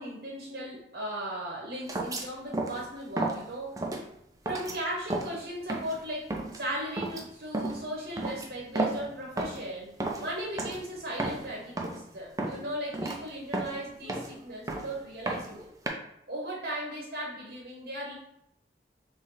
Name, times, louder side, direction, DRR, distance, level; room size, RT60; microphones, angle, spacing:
voice 1, 0.0-3.8 4.4-9.9 10.2-15.7 16.3-18.2, right 1 dB, 55° right, -3 dB, 0.9 m, -37 dB
sound 1, 1.9-2.3 2.5-2.8 3.2-3.4 3.8-4.0 4.5-4.8 5.1-5.4 5.7-6.0 6.3-6.6 7.0-7.2 7.5-7.8 8.2-9.1 9.4-9.7 10.0-10.3 10.6-10.8 11.1-11.5 11.8-12.0 12.4-12.6 12.9-13.2 13.5-14.4 14.7-14.9 15.3-15.9, right 2 dB, 20° right, 0.5 m, -32 dB
3.8 x 3.2 x 3.9 m, 0.78 s
head